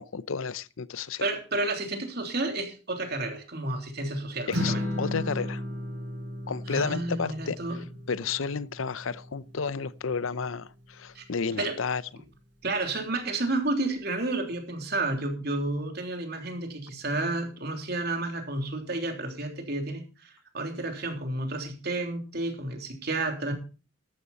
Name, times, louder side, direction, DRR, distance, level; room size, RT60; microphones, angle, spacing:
voice 1, 0.0-1.2 4.5-5.6 6.5-12.0, left 5 dB, 80° left, 0.7 m, -32 dB
voice 2, 1.2-4.8 6.7-7.8 11.1-11.2 11.6-11.8 12.6-23.5, right 2 dB, 50° right, 3.4 m, -31 dB
Strum, 4.5-10.8, left 1 dB, 70° right, 5.4 m, -35 dB
13.0 x 12.5 x 4.2 m
head